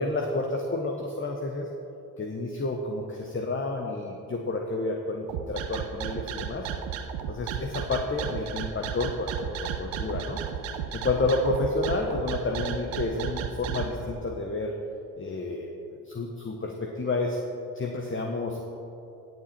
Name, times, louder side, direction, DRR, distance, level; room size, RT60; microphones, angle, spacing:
voice 1, 0.0-1.7 2.2-6.7 7.3-10.4 10.9-14.7 15.2-15.7 16.0-17.4 17.7-18.6, left 2 dB, 25° left, 2 dB, 1.2 m, -30 dB
sound 1, 5.3-13.9, right 9 dB, 75° right, 0.9 m, -33 dB
17.0 x 7.6 x 4.4 m, 2.8 s
hypercardioid pair, 50°, 46 cm